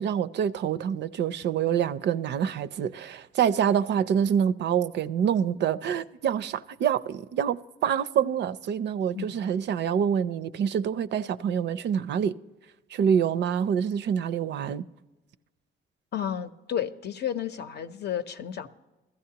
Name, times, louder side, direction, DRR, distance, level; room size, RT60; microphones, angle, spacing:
voice 1, 0.0-12.4 12.9-14.8, right 8 dB, 60° right, 0.4 m, -26 dB
voice 2, 16.1-18.7, left 9 dB, 55° left, 0.7 m, -32 dB
16.0 x 13.5 x 2.8 m
cardioid pair, 90°, 20 cm